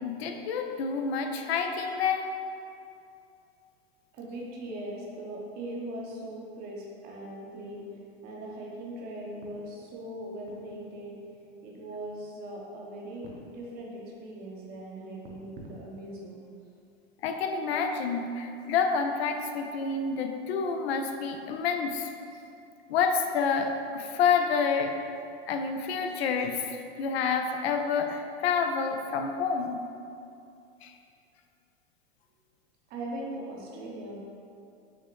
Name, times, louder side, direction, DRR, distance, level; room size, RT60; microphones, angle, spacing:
voice 1, 0.0-2.3 17.2-22.1 22.9-24.9 25.5-29.8 30.8-30.9, left 5 dB, 80° left, 5 dB, 0.5 m, -28 dB
voice 2, 4.1-7.8 8.2-11.2 11.6-16.4 32.9-34.2, right 1 dB, 30° right, -2 dB, 0.6 m, -40 dB
5.7 x 2.1 x 3.1 m, 2.6 s
supercardioid pair, 145°, 31 cm